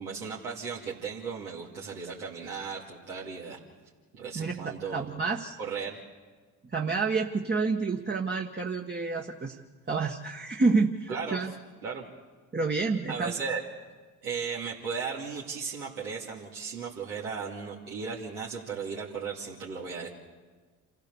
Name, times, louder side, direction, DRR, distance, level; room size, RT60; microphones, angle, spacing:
voice 1, 0.0-3.6 4.1-5.1 5.6-6.0 11.1-11.4 11.8-12.1 13.1-13.6 14.2-20.1, right 5 dB, 80° right, -7 dB, 2.7 m, -36 dB
voice 2, 4.3-5.6 6.7-9.6 9.9-11.5 12.5-13.3, right 4 dB, 25° right, 1 dB, 1.5 m, -29 dB
28.5 x 14.5 x 7.1 m, 1.4 s
hypercardioid pair, 55°, 42 cm